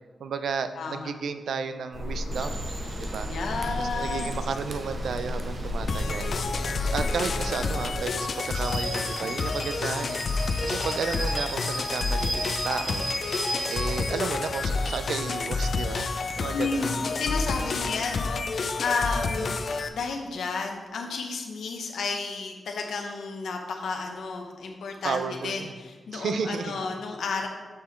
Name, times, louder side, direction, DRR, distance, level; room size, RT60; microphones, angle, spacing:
voice 1, 0.2-2.6 3.0-3.3 3.8-6.3 6.9-10.2 10.6-13.1 13.7-16.9 19.4-19.5 25.0-25.7 26.1-26.8, right 6 dB, 80° right, 10 dB, 0.4 m, -33 dB
voice 2, 0.7-1.1 3.3-4.3 16.5-27.5, left 4 dB, 85° left, 2 dB, 0.8 m, -32 dB
sound 1, 1.9-8.0, left 1 dB, 25° left, 1.0 m, -33 dB
Rain / Train, 2.3-17.8, right 2 dB, 40° right, 0.8 m, -38 dB
sound 2, 5.9-19.9, left 4 dB, 50° left, 0.4 m, -29 dB
6.6 x 5.7 x 4.4 m, 1.5 s
wide cardioid pair, 160°, 0 cm